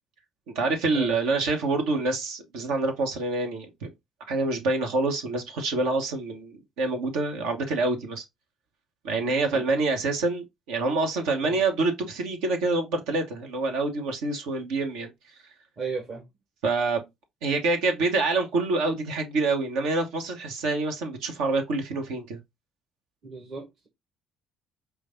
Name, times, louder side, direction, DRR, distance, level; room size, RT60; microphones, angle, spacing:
voice 1, 0.5-3.9 4.3-8.2 9.0-15.1 16.6-17.0 17.4-22.4, right 3 dB, 80° right, 1.1 m, -26 dB
voice 2, 15.8-16.2 23.2-23.9, right 4 dB, 50° right, 1.4 m, -35 dB
4.9 x 2.3 x 3.7 m
hypercardioid pair, 60°, 0 cm